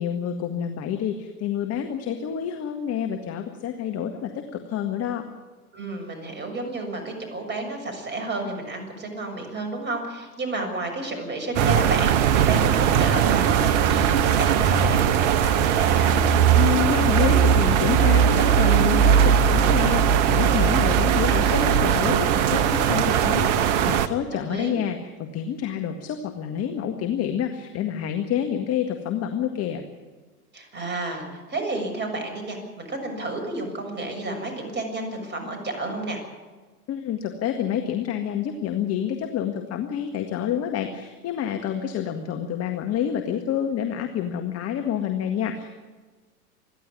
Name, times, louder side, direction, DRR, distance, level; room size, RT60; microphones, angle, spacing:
voice 1, 0.0-5.2 16.6-29.8 36.9-45.7, left 9 dB, 30° left, 5 dB, 1.8 m, -28 dB
voice 2, 5.7-16.1 24.3-24.8 30.5-36.2, right 2 dB, 25° right, 3 dB, 6.9 m, -31 dB
sound 1, 11.5-24.1, right 8 dB, 50° right, 1.3 m, -19 dB
27.5 x 11.5 x 9.7 m, 1.3 s
hypercardioid pair, 100°, 45 cm